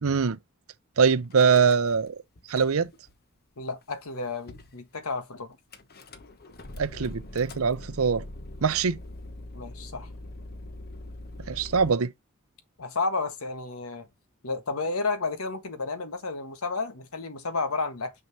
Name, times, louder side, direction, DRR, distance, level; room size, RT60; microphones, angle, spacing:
voice 1, 0.0-0.4 1.0-2.2 2.5-2.9 6.8-8.2 8.6-9.0 11.5-12.1, right 6 dB, 70° right, 0.6 m, -23 dB
Car / Engine starting / Idling, 1.3-2.1 2.4-3.1 3.8-4.1 4.5-4.8 5.7-11.9, left 1 dB, 45° left, 1.0 m, -43 dB
voice 2, 3.6-5.6 9.5-10.1 12.8-14.1 14.4-18.1, left 3 dB, 85° left, 1.5 m, -31 dB
6.1 x 5.7 x 2.8 m
head